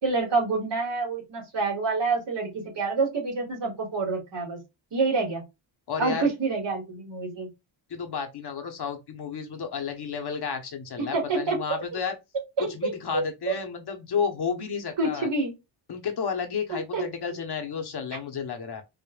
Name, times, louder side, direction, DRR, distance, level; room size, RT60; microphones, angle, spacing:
voice 1, 0.0-4.6 4.9-5.4 6.0-7.5 11.0-11.6 11.9-12.0 12.6-13.6 15.0-15.5 16.7-17.0, right 3 dB, 60° right, 2.1 m, -27 dB
voice 2, 5.9-6.3 7.9-12.2 12.6-15.3 15.9-18.8, left 6 dB, 50° left, 1.0 m, -32 dB
5.0 x 2.5 x 2.3 m
cardioid pair, 105°, 49 cm